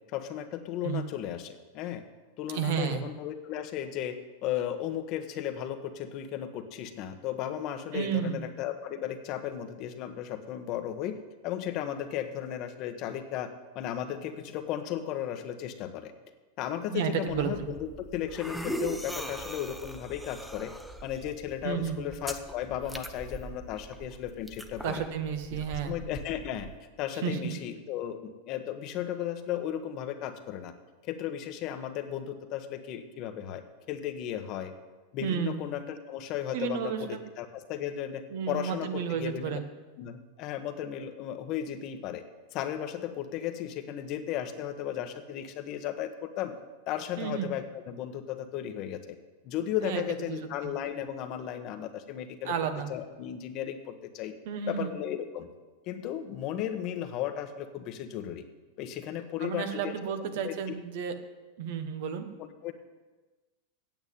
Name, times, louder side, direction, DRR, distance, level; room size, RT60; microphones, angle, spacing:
voice 1, 0.1-2.0 2.4-11.2 11.4-13.5 13.7-16.1 16.6-20.7 21.0-25.0 25.7-26.7 27.0-30.7 31.0-33.6 33.9-34.7 35.1-39.6 40.0-42.2 42.5-46.5 46.9-49.0 49.4-52.5 52.9-54.3 54.7-55.5 55.9-58.4 58.8-59.9 60.2-60.5 62.6-62.7, left 10 dB, 50° left, 7 dB, 1.2 m, -35 dB
voice 2, 2.5-3.0 7.9-8.4 16.9-17.5 21.6-22.0 24.8-26.0 27.2-27.5 35.2-35.5 36.5-37.2 38.3-39.6 47.2-47.5 49.8-50.0 50.3-50.7 52.4-52.9 54.4-54.9 59.4-61.1 61.6-62.3, right 8 dB, 65° right, 8 dB, 1.3 m, -32 dB
sound 1, 17.3-26.8, right 1 dB, ahead, 0.8 m, -41 dB
9.0 x 7.9 x 9.2 m, 1.2 s
hypercardioid pair, 120°, 0 cm